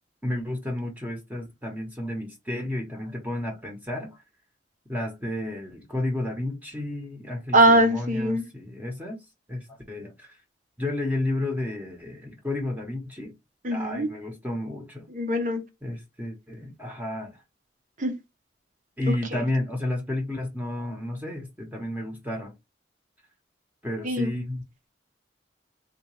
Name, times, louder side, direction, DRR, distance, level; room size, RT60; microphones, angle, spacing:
voice 1, 0.2-4.2 4.9-9.2 9.5-10.4 10.8-13.3 13.7-15.1 15.8-17.4 19.0-22.5 23.8-24.6, left 1 dB, 10° right, 0.9 m, -32 dB
voice 2, 7.5-8.4 13.6-14.1 15.1-15.6 18.0-18.2 24.0-24.3, right 1 dB, 45° right, 0.8 m, -21 dB
3.7 x 2.5 x 3.0 m
head